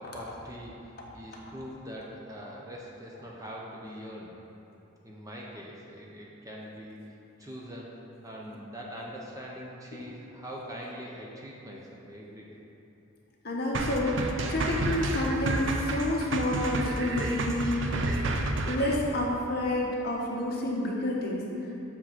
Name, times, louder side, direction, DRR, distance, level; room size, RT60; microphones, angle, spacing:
voice 1, 0.0-4.4 5.0-7.0 7.4-12.6, equal, 15° right, -3 dB, 0.6 m, -43 dB
voice 2, 13.4-18.2 18.7-21.4, left 1 dB, 50° left, -3 dB, 1.1 m, -29 dB
sound 1, 13.7-19.0, right 2 dB, 65° right, 0.5 m, -30 dB
7.4 x 3.6 x 6.0 m, 2.9 s
head